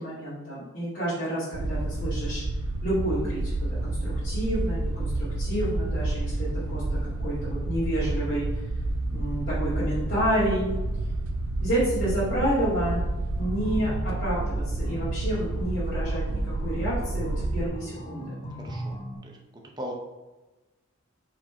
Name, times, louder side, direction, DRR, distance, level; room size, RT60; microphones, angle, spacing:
voice 1, 0.0-2.4 2.8-8.6 9.1-10.7 11.6-13.0 13.4-18.4, right 1 dB, 50° left, -12 dB, 2.1 m, -29 dB
sound 1, 1.5-17.7, right 2 dB, 80° right, 0.5 m, -29 dB
sound 2, 13.4-19.2, equal, 30° left, 0.6 m, -40 dB
voice 2, 18.5-19.9, equal, 20° right, -1 dB, 0.7 m, -40 dB
4.8 x 4.4 x 4.4 m, 1.1 s
head